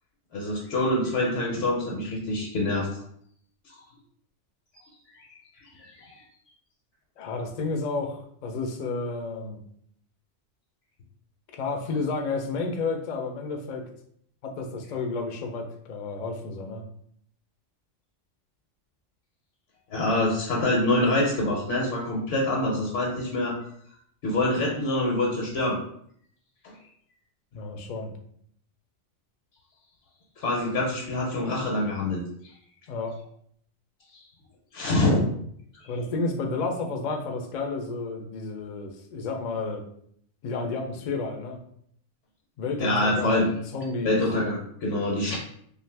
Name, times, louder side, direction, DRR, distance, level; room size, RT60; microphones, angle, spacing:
voice 1, 0.3-2.9 5.8-6.2 19.9-23.6 24.2-25.8 26.6-26.7 30.4-32.2 34.7-35.2 42.8-43.5 44.0-45.4, left 1 dB, 80° left, -2 dB, 1.0 m, -25 dB
voice 2, 7.2-9.6 11.5-13.8 14.4-16.8 27.5-28.1 32.9-33.2 35.9-39.8 40.4-41.6 42.6-44.2, left 3 dB, 60° left, 3 dB, 0.4 m, -31 dB
2.5 x 2.4 x 3.2 m, 0.66 s
omnidirectional pair, 1.2 m